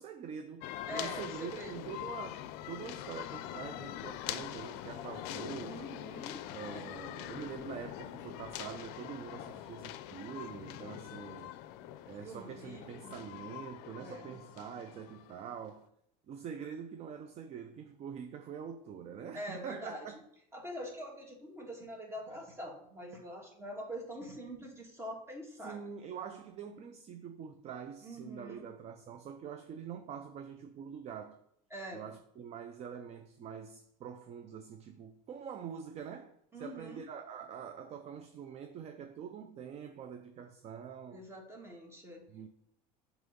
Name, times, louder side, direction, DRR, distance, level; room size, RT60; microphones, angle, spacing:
voice 1, 0.0-5.8 6.5-11.5 12.0-15.9 16.3-20.1 25.6-31.4 31.9-41.3 42.3-42.5, right 7 dB, 35° right, 0.5 m, -45 dB
sound 1, 0.6-15.6, left 13 dB, 65° left, 0.5 m, -44 dB
voice 2, 0.9-1.9 5.6-6.8 12.2-13.2 14.0-14.4 19.3-20.1 20.5-25.8 28.0-28.7 31.7-32.1 36.5-37.0 41.1-42.2, equal, 15° right, 1.7 m, -44 dB
7.4 x 3.0 x 5.2 m
supercardioid pair, 120°, 18 cm